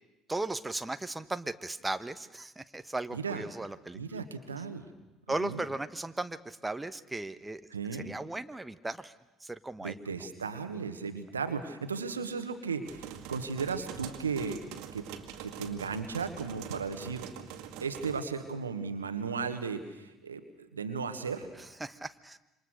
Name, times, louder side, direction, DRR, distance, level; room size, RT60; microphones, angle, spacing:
voice 1, 0.3-4.2 5.3-7.6 7.9-9.1 9.4-10.0 21.8-22.4, right 2 dB, 10° right, 11 dB, 1.2 m, -36 dB
voice 2, 3.1-3.4 3.9-4.9 5.4-5.6 7.7-8.1 9.8-14.6 14.9-15.1 15.4-17.3 17.8-21.5, right 5 dB, 90° right, 9 dB, 1.6 m, -35 dB
sound 1, 12.8-18.2, right 9 dB, 65° right, 2.1 m, -44 dB
27.5 x 25.0 x 6.5 m, 1.0 s
figure-of-eight pair, 60°, 0 cm